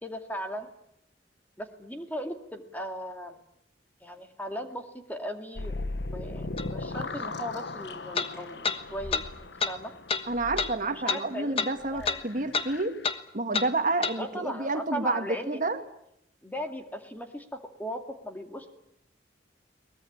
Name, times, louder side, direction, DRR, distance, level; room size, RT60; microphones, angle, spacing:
voice 1, 0.0-0.7 1.6-3.4 4.0-5.8 6.1-9.9 10.9-11.6 11.9-12.2 14.2-15.6 16.4-18.7, equal, 10° left, 5 dB, 2.3 m, -38 dB
sound 1, 5.6-13.1, left 2 dB, 70° left, 1.3 m, -38 dB
sound 2, 6.6-6.7 8.1-8.3 8.6-8.8 9.1-9.2 9.6-9.7 10.1-10.2 10.6-10.7 11.1-11.2 11.6-11.7 12.0-12.2 12.5-12.7 13.0-13.2 13.5-13.7 14.0-14.2, left 5 dB, 35° left, 1.4 m, -28 dB
voice 2, 10.3-12.9 13.3-15.8, right 2 dB, 45° right, 7 dB, 1.9 m, -29 dB
23.0 x 20.0 x 8.8 m, 0.75 s
head